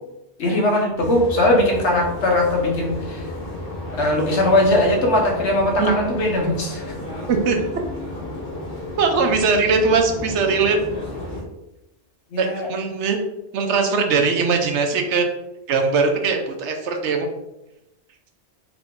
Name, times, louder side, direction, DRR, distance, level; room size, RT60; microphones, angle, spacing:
voice 1, 0.4-3.3 3.9-6.8 12.3-12.7, left 1 dB, 80° left, -1 dB, 1.3 m, -20 dB
sound 1, 1.0-11.4, left 1 dB, 45° left, 1.6 m, -32 dB
voice 2, 9.0-10.8 12.4-13.2 13.5-15.2 15.7-17.3, right 4 dB, 80° right, 4 dB, 0.9 m, -20 dB
3.6 x 2.9 x 3.6 m, 0.92 s
omnidirectional pair, 1.2 m